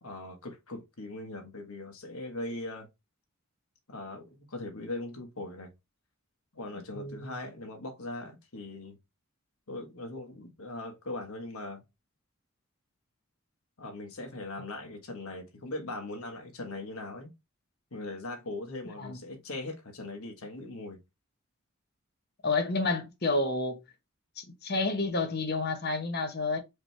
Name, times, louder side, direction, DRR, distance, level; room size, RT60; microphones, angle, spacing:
voice 1, 0.0-2.9 3.9-5.7 6.5-9.0 9.7-11.8 13.8-17.3 17.9-21.0, left 2 dB, 85° left, 1.4 m, -40 dB
voice 2, 6.9-7.3 19.0-19.2 22.4-23.8 24.4-26.6, left 3 dB, 45° left, 1.0 m, -30 dB
5.0 x 3.0 x 3.3 m
head